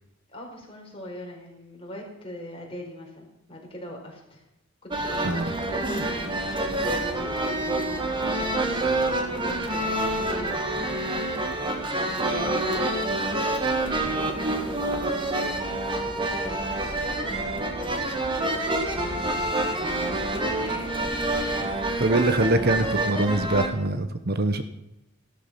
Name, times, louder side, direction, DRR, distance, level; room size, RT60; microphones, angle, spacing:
voice 1, 0.3-4.4 4.8-5.5 5.7-9.0 9.3-10.7 12.2-13.3 13.9-18.0 18.6-19.5 20.4-21.5, left 1 dB, 30° left, 0 dB, 4.5 m, -40 dB
sound 1, 4.9-23.7, right 2 dB, 25° right, 1.9 m, -27 dB
voice 2, 22.0-24.6, right 2 dB, 50° right, 9 dB, 1.1 m, -23 dB
15.0 x 12.5 x 5.8 m, 0.88 s
head